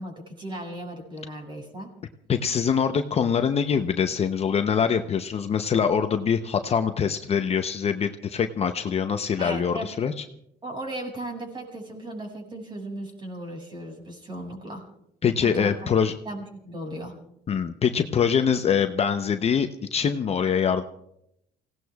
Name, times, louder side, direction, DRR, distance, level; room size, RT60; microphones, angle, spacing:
voice 1, 0.0-2.0 9.4-9.9 10.6-14.8 15.4-16.0 16.3-17.2, right 1 dB, 30° right, 2 dB, 5.7 m, -36 dB
voice 2, 2.3-10.1 15.2-16.1 17.5-20.8, left 7 dB, 40° left, 8 dB, 0.7 m, -24 dB
30.0 x 17.5 x 2.4 m, 0.78 s
cardioid pair, 110°, 17 cm